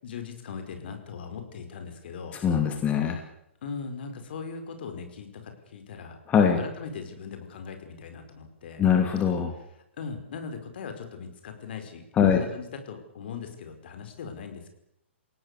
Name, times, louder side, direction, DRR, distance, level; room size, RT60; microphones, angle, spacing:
voice 1, 0.0-2.4 3.6-5.3 5.7-6.2 6.6-8.9 10.0-12.0 12.3-14.7, left 5 dB, 50° left, 6 dB, 5.0 m, -39 dB
voice 2, 2.3-3.2 6.3-6.6 8.8-9.5 12.1-12.4, left 7 dB, 20° left, 4 dB, 2.9 m, -22 dB
29.0 x 17.5 x 6.8 m, 0.79 s
figure-of-eight pair, 120°, 7 cm